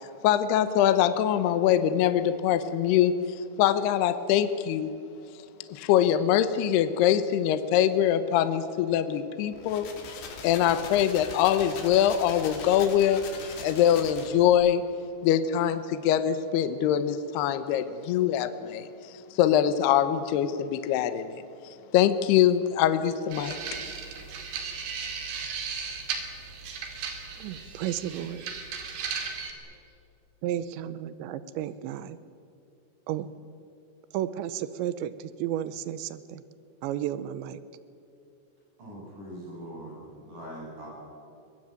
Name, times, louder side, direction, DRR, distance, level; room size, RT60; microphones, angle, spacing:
voice 1, 0.2-3.2 3.6-4.9 5.7-9.9 10.4-13.3 13.6-14.8 15.2-21.4 21.9-23.8, left 10 dB, 75° left, 11 dB, 2.5 m, -23 dB
sound 1, 9.5-14.5, left 5 dB, 60° left, 4.4 m, -41 dB
sound 2, 23.3-29.5, right 5 dB, 60° right, 4.4 m, -36 dB
voice 2, 27.4-28.4 30.4-32.2 33.1-33.3 34.1-36.4 36.8-37.6, right 11 dB, 80° right, 14 dB, 2.8 m, -33 dB
voice 3, 38.8-40.9, right 1 dB, 40° right, -3 dB, 9.3 m, -42 dB
23.5 x 20.0 x 9.1 m, 2.6 s
omnidirectional pair, 5.8 m